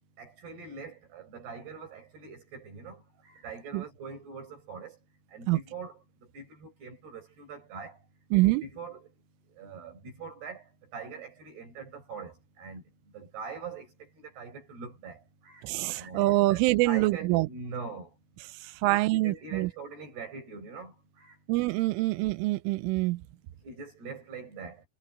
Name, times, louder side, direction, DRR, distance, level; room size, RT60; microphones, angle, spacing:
voice 1, 0.2-3.0 3.4-5.0 5.3-6.0 6.3-8.0 8.4-9.1 9.6-10.6 10.9-12.8 13.1-13.9 14.2-15.6 15.9-18.1 18.9-20.9 21.2-21.4 23.6-24.8, right 4 dB, 55° right, 9.0 m, -42 dB
voice 2, 8.3-8.6 15.6-17.5 18.8-19.7 21.5-23.2, right 20 dB, 85° right, 3.2 m, -25 dB
omnidirectional pair, 5.8 m